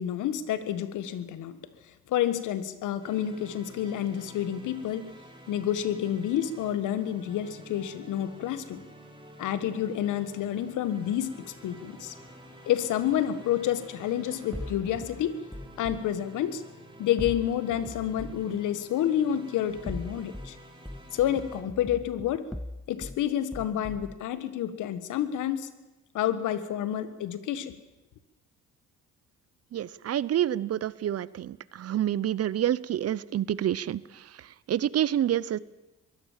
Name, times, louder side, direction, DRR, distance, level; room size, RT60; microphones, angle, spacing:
voice 1, 0.0-1.6 2.1-5.1 5.5-8.8 9.4-12.1 12.7-15.4 15.8-16.6 17.0-20.6 21.1-22.5 22.9-25.7 26.1-27.7, left 10 dB, 85° left, 13 dB, 1.5 m, -29 dB
sound 1, 3.0-21.6, right 1 dB, 15° right, 4.4 m, -50 dB
sound 2, 10.4-15.3, left 2 dB, 55° left, 8.0 m, -56 dB
sound 3, 14.5-16.0 17.2-18.5 19.7-20.5 20.9-23.2 23.5-24.2, left 1 dB, 5° left, 0.7 m, -40 dB
voice 2, 29.7-35.6, right 11 dB, 55° right, 21 dB, 0.7 m, -28 dB
22.5 x 16.0 x 7.4 m, 1.1 s
cardioid pair, 90°, 30 cm